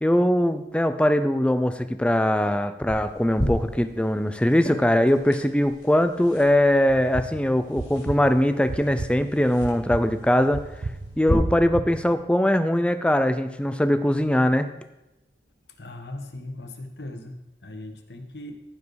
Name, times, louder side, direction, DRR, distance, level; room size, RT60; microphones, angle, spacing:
voice 1, 0.0-10.6 11.2-14.7, left 1 dB, 5° left, 10 dB, 0.5 m, -21 dB
sound 1, 2.9-11.3, equal, 30° left, 3.4 m, -35 dB
sound 2, 6.9-12.2, right 3 dB, 60° right, 0.5 m, -35 dB
voice 2, 15.8-18.5, left 1 dB, 75° left, 6 dB, 1.2 m, -39 dB
14.5 x 5.2 x 4.8 m, 0.95 s
head